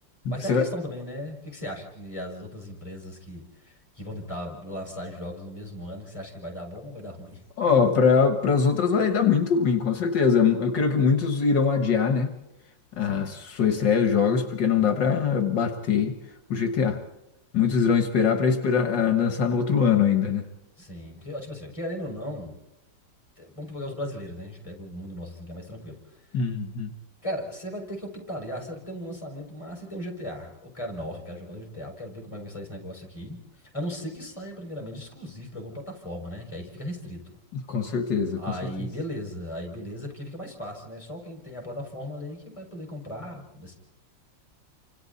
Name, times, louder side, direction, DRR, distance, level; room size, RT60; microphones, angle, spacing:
voice 1, 0.3-7.4 13.0-13.4 18.2-18.3 20.8-22.6 23.4-26.4 27.2-33.4 33.7-37.4 38.4-43.8, equal, 15° left, 0 dB, 6.0 m, -37 dB
voice 2, 7.6-12.3 13.0-16.2 16.5-17.0 17.5-20.5 26.3-26.9 37.7-38.4, left 6 dB, 70° left, 6 dB, 2.1 m, -22 dB
30.0 x 26.0 x 4.2 m, 0.92 s
omnidirectional pair, 2.0 m